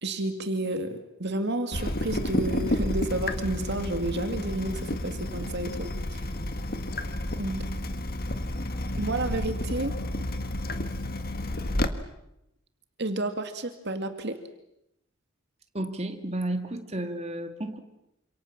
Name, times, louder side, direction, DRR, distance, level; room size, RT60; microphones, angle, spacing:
voice 1, 0.0-6.3 7.4-7.6 9.0-9.9 13.0-14.5, right 2 dB, 55° right, 7 dB, 2.2 m, -31 dB
Water tap faucet / Drip, 1.7-11.9, left 1 dB, 45° left, 1.8 m, -31 dB
voice 2, 15.7-17.8, right 1 dB, 30° right, 5 dB, 2.4 m, -32 dB
28.0 x 27.5 x 7.3 m, 0.84 s
head